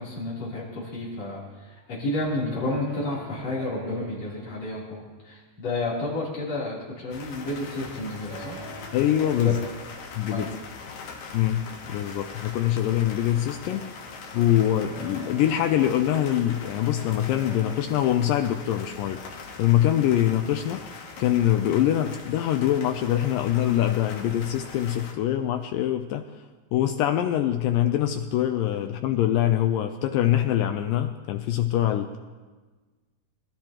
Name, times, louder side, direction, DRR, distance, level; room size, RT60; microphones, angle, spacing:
voice 1, 0.0-8.6 9.3-9.5 10.3-10.4 13.6-13.7, left 2 dB, 45° left, -6 dB, 4.3 m, -31 dB
sound 1, 2.2-7.0 7.8-11.6 14.4-20.0, right 2 dB, 90° right, 4.0 m, -46 dB
sound 2, 7.1-25.1, left 4 dB, 60° left, 2.2 m, -42 dB
voice 2, 8.9-9.6 10.1-10.5 11.3-13.9 14.3-19.2 19.6-26.2 26.7-32.2, left 12 dB, 80° left, 7 dB, 2.0 m, -24 dB
23.0 x 13.0 x 2.9 m, 1.3 s
omnidirectional pair, 4.4 m